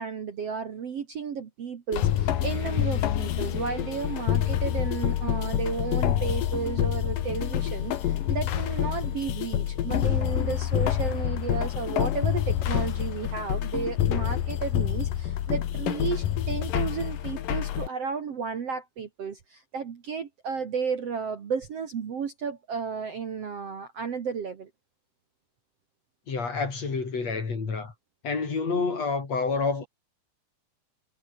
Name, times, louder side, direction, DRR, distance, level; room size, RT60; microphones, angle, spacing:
voice 1, 0.0-24.7, right 6 dB, 50° right, 2.4 m, -33 dB
sound 1, 1.9-17.9, left 11 dB, 65° left, 3.1 m, -27 dB
voice 2, 26.3-27.9 28.2-29.9, left 4 dB, 45° left, 5.3 m, -28 dB
omnidirectional pair, 4.4 m